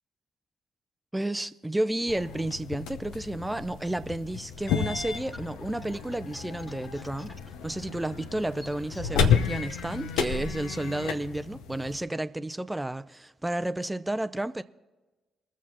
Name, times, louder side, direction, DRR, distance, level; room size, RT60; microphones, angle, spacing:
voice 1, 1.1-7.3 7.6-14.6, right 1 dB, 10° right, 0.5 m, -31 dB
sound 1, 2.1-12.0, left 7 dB, 70° left, 0.7 m, -32 dB
sound 2, 4.5-9.9, equal, 10° left, 1.5 m, -50 dB
22.0 x 7.3 x 4.1 m
figure-of-eight pair, 40°, 0 cm